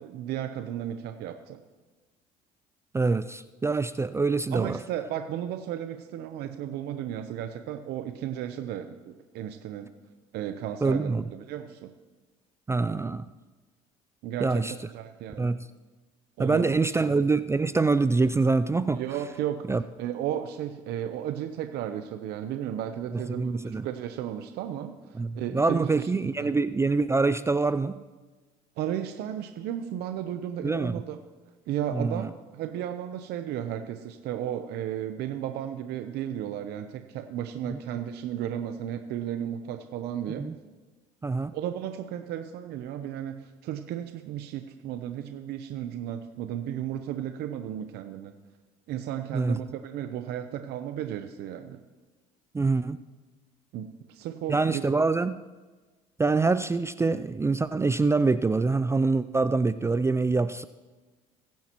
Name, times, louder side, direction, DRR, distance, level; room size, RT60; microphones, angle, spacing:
voice 1, 0.0-1.6 4.5-9.9 10.3-11.9 14.2-14.6 14.9-15.5 16.4-16.8 18.9-19.7 20.0-26.1 26.4-26.5 28.8-31.2 31.7-40.5 41.5-48.3 48.9-51.8 53.7-54.8, right 10 dB, 65° right, 8 dB, 0.8 m, -34 dB
voice 2, 2.9-4.7 10.8-11.2 12.7-13.3 14.4-14.7 15.4-15.7 16.4-19.0 19.7-19.8 23.1-23.9 25.1-28.0 30.6-30.9 31.9-32.3 37.7-37.8 40.4-40.5 41.2-41.5 49.3-49.6 52.5-53.0 54.5-55.4 56.2-60.7, right 3 dB, 15° right, 13 dB, 0.4 m, -25 dB
22.5 x 10.5 x 3.0 m, 1.3 s
supercardioid pair, 75°, 18 cm